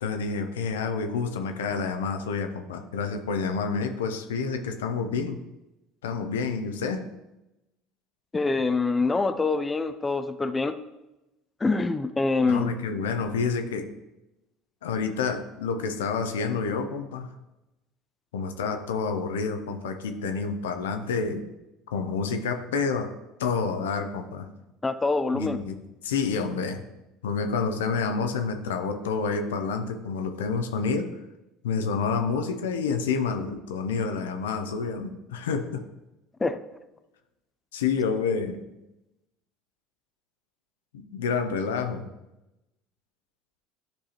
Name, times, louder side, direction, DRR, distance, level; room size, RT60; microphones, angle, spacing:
voice 1, 0.0-5.4 6.0-7.0 12.5-13.9 14.8-17.3 18.3-21.4 21.9-23.1 23.4-24.5 25.3-26.8 27.2-31.1 31.6-35.8 37.7-38.6 40.9-42.1, left 5 dB, 80° left, 6 dB, 0.6 m, -28 dB
voice 2, 8.3-10.7 11.6-12.7 24.8-25.6 36.4-36.6, left 3 dB, 20° left, 10 dB, 0.5 m, -25 dB
10.5 x 4.7 x 2.9 m, 0.96 s
hypercardioid pair, 65°, 0 cm